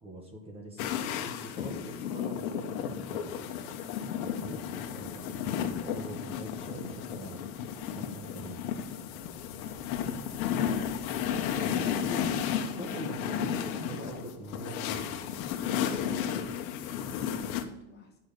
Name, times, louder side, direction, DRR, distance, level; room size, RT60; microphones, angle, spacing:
voice 1, 0.0-3.3 4.1-7.5 7.9-8.8 11.5-12.3 12.7-15.3, right 1 dB, 15° right, 2 dB, 1.1 m, -43 dB
sound 1, 0.8-17.6, left 8 dB, 90° left, 1.2 m, -33 dB
voice 2, 11.9-13.1 16.8-18.2, left 4 dB, 25° left, 2 dB, 1.1 m, -49 dB
8.4 x 5.6 x 6.5 m, 0.95 s
cardioid pair, 170°, 41 cm